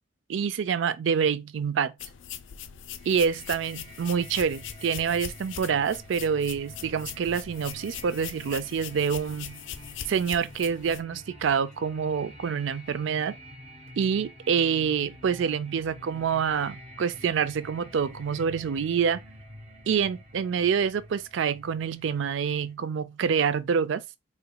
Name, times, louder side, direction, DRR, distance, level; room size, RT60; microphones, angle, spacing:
voice 1, 0.3-1.9 3.0-9.6 10.1-13.3 14.0-19.2 19.9-24.0, right 6 dB, 65° right, 0.3 m, -27 dB
sound 1, 2.0-11.0, left 9 dB, 65° left, 0.4 m, -41 dB
sound 2, 3.0-22.7, equal, 30° right, 1.0 m, -48 dB
4.1 x 2.9 x 2.3 m
head